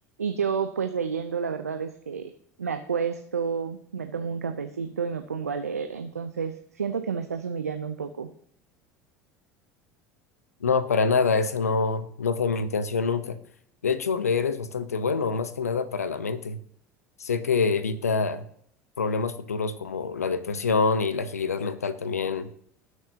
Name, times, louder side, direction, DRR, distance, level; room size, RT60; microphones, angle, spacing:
voice 1, 0.2-2.3 2.6-8.3, right 6 dB, 90° right, 8 dB, 0.7 m, -30 dB
voice 2, 10.6-13.4 13.8-16.6 17.2-18.4 19.0-22.5, left 4 dB, 90° left, 14 dB, 0.9 m, -26 dB
19.0 x 6.4 x 2.9 m, 0.67 s
hypercardioid pair, 70°, 8 cm